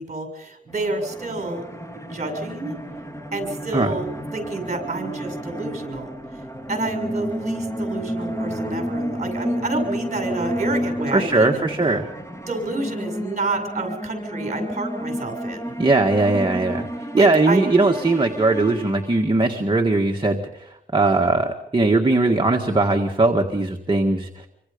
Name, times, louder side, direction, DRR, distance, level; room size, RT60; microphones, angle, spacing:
voice 1, 0.0-1.6 1.9-2.7 3.3-6.1 6.7-11.6 12.5-15.7 17.1-17.6, right 2 dB, 45° right, 4 dB, 6.7 m, -29 dB
sound 1, 0.7-19.5, equal, 15° left, 3.0 m, -31 dB
voice 2, 11.1-12.1 15.8-24.5, right 2 dB, 30° right, 2 dB, 1.8 m, -20 dB
27.0 x 24.5 x 5.3 m, 0.82 s
wide cardioid pair, 110°, 16 cm